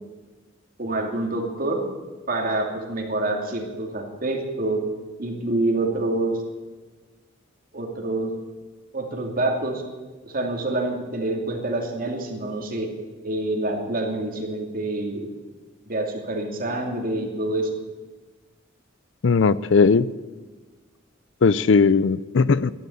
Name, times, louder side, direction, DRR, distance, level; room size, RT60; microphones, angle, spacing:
voice 1, 0.8-1.8 2.3-4.8 5.2-6.3 7.7-8.3 8.9-9.8 10.2-12.9 13.2-15.3 15.9-17.7, right 2 dB, 45° right, 2 dB, 2.6 m, -26 dB
voice 2, 19.2-20.1 21.4-22.7, left 4 dB, 70° left, 18 dB, 0.5 m, -18 dB
13.0 x 11.0 x 8.5 m, 1.3 s
head